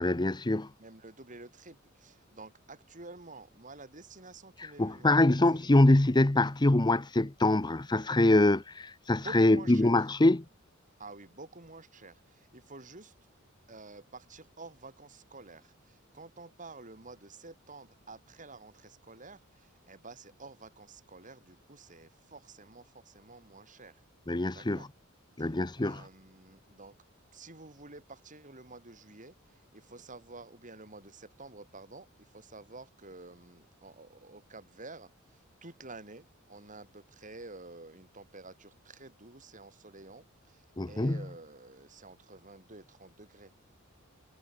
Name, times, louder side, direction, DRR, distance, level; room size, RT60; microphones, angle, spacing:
voice 1, 0.0-0.7 4.6-10.4 24.3-24.9 25.4-26.0 40.8-41.2, left 2 dB, 20° left, 0.8 m, -24 dB
voice 2, 0.8-5.7 9.1-10.0 11.0-13.1 13.7-24.0 24.5-24.9 25.4-27.0 27.3-43.5, right 3 dB, 40° right, 5.6 m, -50 dB
head